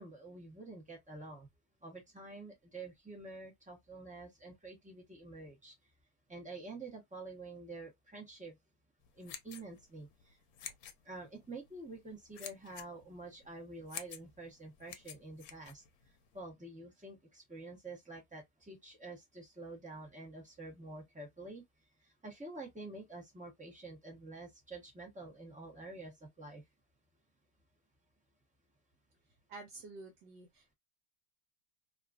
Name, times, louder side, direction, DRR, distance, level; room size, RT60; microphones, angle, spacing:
voice 1, 0.0-1.5 1.8-5.8 6.3-8.6 9.1-10.4 11.0-21.6 22.0-26.6, right 2 dB, 10° right, 0.4 m, -48 dB
sound 1, 9.0-16.4, left 9 dB, 70° left, 1.1 m, -50 dB
voice 2, 29.5-30.7, right 3 dB, 75° right, 1.3 m, -50 dB
2.9 x 2.5 x 2.3 m
omnidirectional pair, 1.9 m